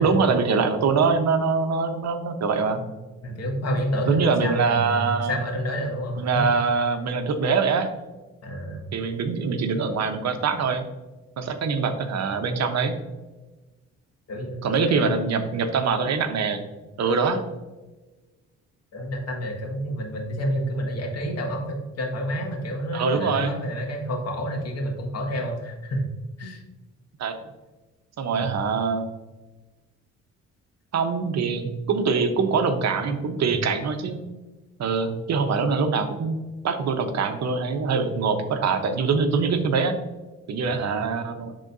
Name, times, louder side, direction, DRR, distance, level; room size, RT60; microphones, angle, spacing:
voice 1, 0.0-2.8 4.1-5.4 6.2-7.9 8.9-10.8 11.4-12.9 14.6-16.6 17.0-17.4 22.9-23.5 27.2-27.3 28.2-29.0 30.9-34.2 34.8-36.4 36.6-40.0 40.5-41.5, right 5 dB, 60° right, 7 dB, 1.0 m, -23 dB
voice 2, 3.2-6.5 8.4-8.9 14.3-15.2 18.9-26.6 28.4-28.5 33.4-33.5 40.6-40.8, equal, 55° left, 1 dB, 1.8 m, -29 dB
11.5 x 3.9 x 2.7 m, 1.2 s
cardioid pair, 90°, 30 cm